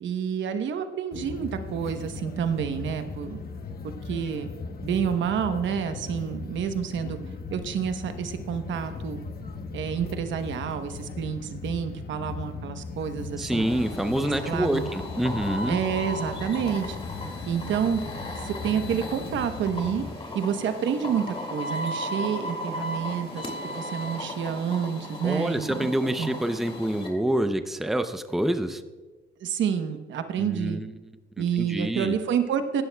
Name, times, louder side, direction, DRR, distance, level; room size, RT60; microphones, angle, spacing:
voice 1, 0.0-3.4 4.1-4.5 4.8-7.2 7.5-9.2 9.7-13.7 14.4-14.9 15.7-17.0 17.5-18.0 18.4-20.0 20.3-26.3 29.4-30.8 31.4-32.8, right 8 dB, 70° right, 8 dB, 1.0 m, -29 dB
sound 1, 1.1-20.1, left 4 dB, 50° left, 1.1 m, -38 dB
voice 2, 13.4-15.8 25.2-28.8 30.4-30.9 31.4-32.1, right 1 dB, ahead, 9 dB, 0.6 m, -27 dB
sound 2, 13.5-27.1, left 1 dB, 30° left, 2.5 m, -36 dB
16.0 x 11.5 x 2.3 m, 1.3 s
cardioid pair, 90°, 20 cm